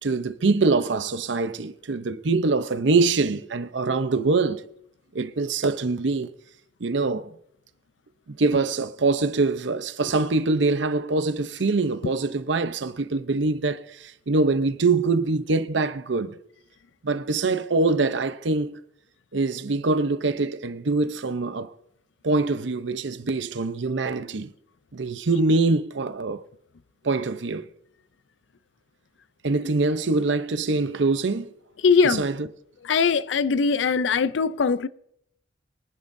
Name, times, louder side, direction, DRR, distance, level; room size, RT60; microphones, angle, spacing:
voice 1, 0.0-4.6 5.1-6.3 6.8-7.3 8.4-16.4 17.0-18.8 19.3-21.7 22.2-24.5 24.9-26.4 27.0-27.7 29.4-31.5 32.0-32.5, right 3 dB, 75° right, 0.7 m, -24 dB
voice 2, 31.8-32.2 32.8-34.9, left 5 dB, 80° left, 0.5 m, -21 dB
24.0 x 10.5 x 2.7 m
head